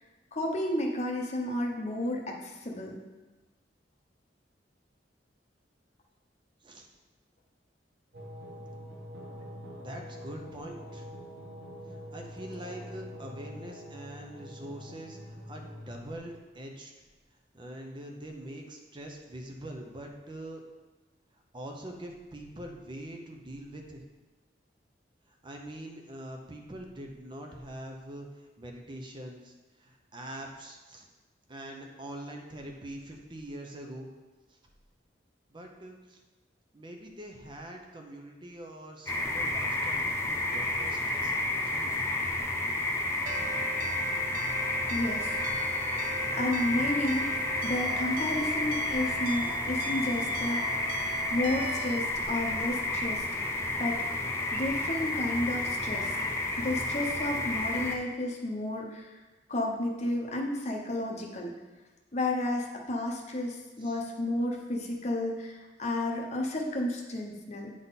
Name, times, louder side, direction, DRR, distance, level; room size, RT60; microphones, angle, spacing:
voice 1, 0.3-3.0 44.9-45.4 46.3-47.3 47.6-50.8 51.3-53.5 53.8-54.1 54.5-56.2 56.6-59.2 59.5-61.5 62.1-67.7, left 1 dB, 40° left, 1 dB, 0.9 m, -32 dB
sound 1, 8.1-16.2, equal, 65° right, 1.3 m, -45 dB
voice 2, 9.8-11.1 12.1-16.9 17.5-20.6 21.5-24.0 25.3-29.5 29.8-31.1 31.5-34.1 34.5-34.6 35.5-36.2 36.7-41.9 63.8-64.0, right 1 dB, 25° right, 2 dB, 0.7 m, -44 dB
sound 2, 39.1-57.9, left 2 dB, 15° left, 0.7 m, -31 dB
sound 3, 43.3-52.0, right 8 dB, 45° right, 0.3 m, -41 dB
9.1 x 3.7 x 4.1 m, 1.2 s
head